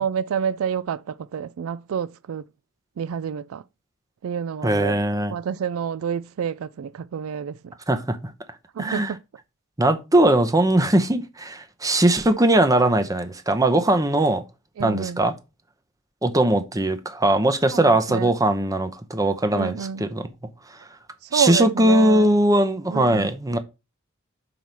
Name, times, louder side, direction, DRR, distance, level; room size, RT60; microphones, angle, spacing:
voice 1, 0.0-2.4 3.0-3.6 4.2-5.0 5.3-7.7 8.7-9.2 14.8-15.2 17.7-18.3 19.5-20.1 21.3-22.3 22.9-23.3, right 7 dB, 80° right, 0.4 m, -28 dB
voice 2, 4.6-5.3 7.9-8.2 8.8-9.1 9.8-14.4 14.8-15.3 16.2-20.2 21.3-23.6, right 1 dB, 15° right, 0.8 m, -20 dB
6.0 x 4.6 x 5.3 m
head